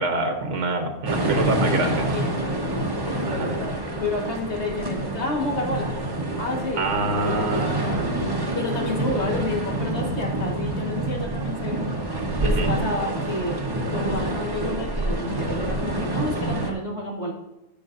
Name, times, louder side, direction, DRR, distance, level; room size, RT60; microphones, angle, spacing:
voice 1, 0.0-2.2 3.3-3.5 6.8-7.7 12.4-12.7, right 2 dB, 60° right, 5 dB, 1.3 m, -26 dB
sound 1, 1.1-16.7, right 1 dB, 20° right, 0.9 m, -27 dB
voice 2, 2.1-6.0 6.4-11.8 12.4-13.6 13.9-17.3, left 2 dB, 50° left, 0 dB, 1.8 m, -30 dB
12.0 x 7.0 x 2.6 m, 0.95 s
omnidirectional pair, 1.5 m